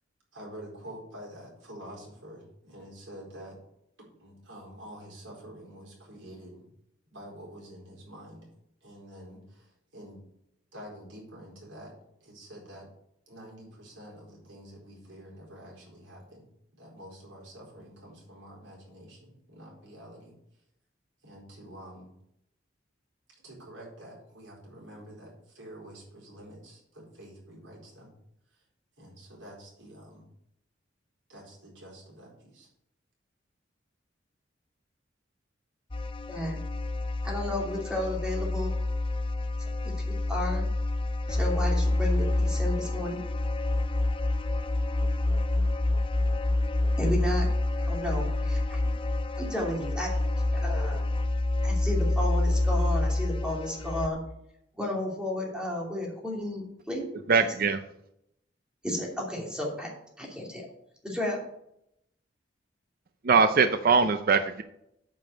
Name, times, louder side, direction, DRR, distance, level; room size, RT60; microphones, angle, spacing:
voice 1, 0.3-3.6 4.1-6.6 7.1-8.5 8.8-10.2 10.7-11.9 12.2-12.9 13.3-16.5 16.8-20.3 21.2-22.1 23.4-28.1 29.0-30.3 31.3-32.7, equal, 85° right, -2 dB, 4.4 m, -47 dB
sound 1, 35.9-54.1, left 2 dB, 30° left, 0.7 m, -27 dB
voice 2, 37.2-38.7 39.8-39.9 40.3-40.7 41.3-43.2 47.0-47.5 47.8-48.8 49.4-50.1 50.5-51.1 51.6-54.2 54.8-57.5 58.8-59.9 60.2-60.7 61.0-61.4, left 1 dB, 5° right, -2 dB, 2.6 m, -33 dB
voice 3, 57.3-57.8 63.2-64.6, right 5 dB, 50° right, 9 dB, 0.6 m, -22 dB
9.2 x 5.3 x 6.6 m, 0.77 s
head